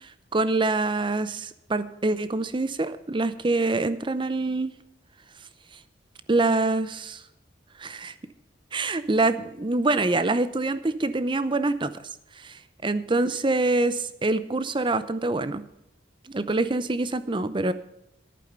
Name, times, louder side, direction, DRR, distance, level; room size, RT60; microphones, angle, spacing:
voice 1, 0.3-4.7 6.3-7.2 7.8-8.1 8.7-11.9 12.4-15.6 16.3-17.7, right 2 dB, 25° right, 13 dB, 0.6 m, -25 dB
11.0 x 9.0 x 6.8 m, 0.81 s
head